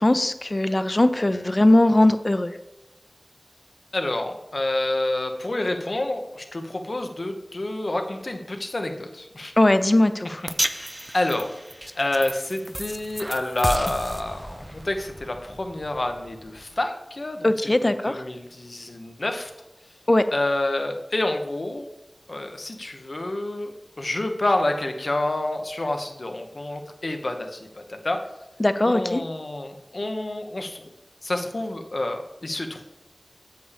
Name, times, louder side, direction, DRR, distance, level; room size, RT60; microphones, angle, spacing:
voice 1, 0.0-2.5 9.6-10.4 17.4-18.2 20.1-20.3 28.6-29.2, left 1 dB, 45° left, 11 dB, 0.6 m, -20 dB
voice 2, 3.9-9.5 11.1-11.4 12.0-17.5 18.1-19.5 20.3-21.9 22.3-28.2 28.9-30.9 31.2-32.8, left 2 dB, 75° left, 5 dB, 1.0 m, -28 dB
sound 1, 10.5-16.8, right 1 dB, 20° right, 0.4 m, -33 dB
8.3 x 7.8 x 3.4 m, 0.99 s
wide cardioid pair, 40°, 0 cm